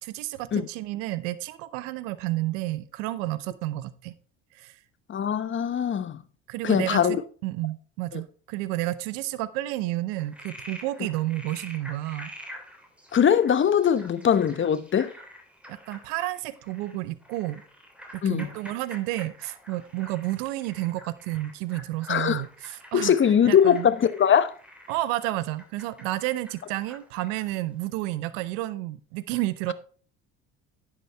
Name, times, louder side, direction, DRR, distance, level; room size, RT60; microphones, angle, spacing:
voice 1, 0.0-4.1 4.5-4.7 6.5-12.3 15.7-17.6 18.2-23.1 23.4-23.9 24.9-29.7, right 17 dB, 75° right, 0.9 m, -31 dB
voice 2, 5.1-6.2 6.6-7.2 8.1-8.2 13.1-15.1 18.2-18.5 22.1-22.4 22.9-24.5, left 8 dB, 30° left, 0.9 m, -21 dB
Frog, 10.1-27.6, equal, 5° right, 3.0 m, -47 dB
10.5 x 7.4 x 3.4 m
hypercardioid pair, 75°, 37 cm